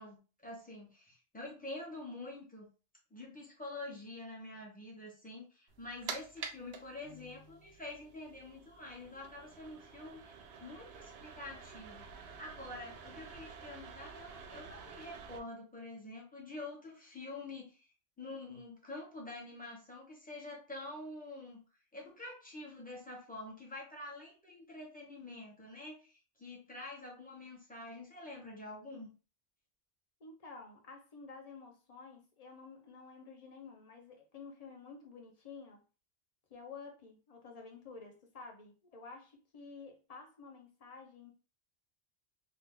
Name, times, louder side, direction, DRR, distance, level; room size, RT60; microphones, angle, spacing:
voice 1, 0.0-2.7 3.1-17.9 18.2-21.6 21.9-29.1, left 2 dB, 10° left, 1.0 m, -47 dB
sound 1, 5.7-15.4, right 6 dB, 65° right, 0.8 m, -49 dB
sound 2, 7.0-8.1, left 4 dB, 80° left, 0.9 m, -59 dB
voice 2, 30.2-35.8 36.5-41.3, left 4 dB, 40° left, 0.7 m, -51 dB
2.8 x 2.4 x 3.6 m
omnidirectional pair, 1.2 m